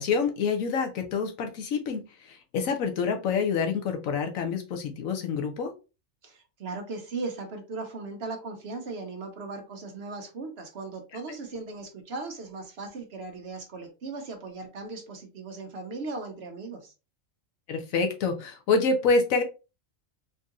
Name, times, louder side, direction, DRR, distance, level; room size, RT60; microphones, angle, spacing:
voice 1, 0.0-5.7 17.7-19.4, left 4 dB, 80° left, 5 dB, 1.1 m, -27 dB
voice 2, 6.2-16.9, right 3 dB, 55° right, 5 dB, 0.9 m, -38 dB
3.7 x 2.7 x 2.4 m, 0.30 s
omnidirectional pair, 1.4 m